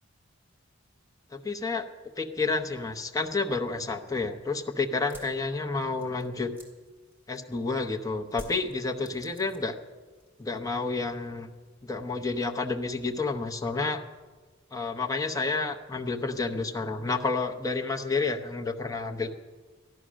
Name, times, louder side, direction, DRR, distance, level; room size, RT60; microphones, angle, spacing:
voice 1, 1.3-1.9 2.2-6.5 7.3-9.8 10.4-11.5 11.8-14.0 14.7-19.3, left 3 dB, 15° left, 3 dB, 0.8 m, -30 dB
sound 1, 5.1-7.7 8.3-9.9 10.1-10.7, equal, 10° right, 2.3 m, -49 dB
14.0 x 11.5 x 6.2 m, 1.3 s
head